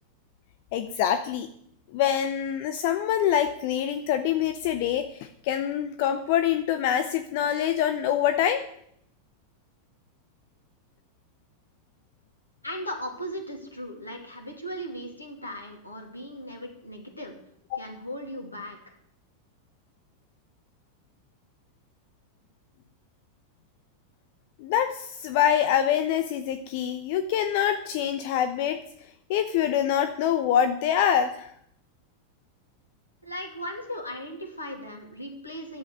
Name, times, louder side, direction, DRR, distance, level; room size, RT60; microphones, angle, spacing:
voice 1, 0.7-1.5 1.9-8.6 17.7-17.8 24.6-28.8 29.3-31.5, left 9 dB, 50° left, 8 dB, 0.8 m, -25 dB
voice 2, 12.6-17.3 17.8-18.9 33.2-35.8, equal, 85° left, 2 dB, 2.7 m, -37 dB
10.5 x 8.1 x 9.7 m, 0.70 s
figure-of-eight pair, 90°, 0 cm